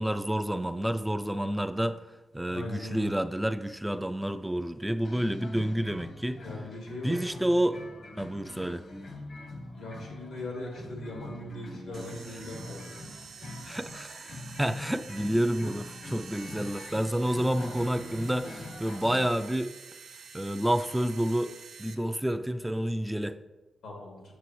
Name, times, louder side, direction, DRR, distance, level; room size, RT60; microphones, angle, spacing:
voice 1, 0.0-2.0 2.3-6.6 7.0-7.8 8.2-8.8 12.3-12.4 13.6-19.7 20.3-21.5 21.8-23.4, right 1 dB, 5° right, 9 dB, 0.3 m, -29 dB
voice 2, 2.5-3.1 6.4-7.1 9.7-12.8 23.8-24.2, left 1 dB, 90° left, 0 dB, 2.2 m, -40 dB
sound 1, 5.0-19.3, left 1 dB, 60° left, 1.2 m, -44 dB
sound 2, 11.9-21.9, right 5 dB, 80° right, 0.7 m, -48 dB
8.1 x 6.7 x 3.1 m, 1.2 s
cardioid pair, 70°, 0 cm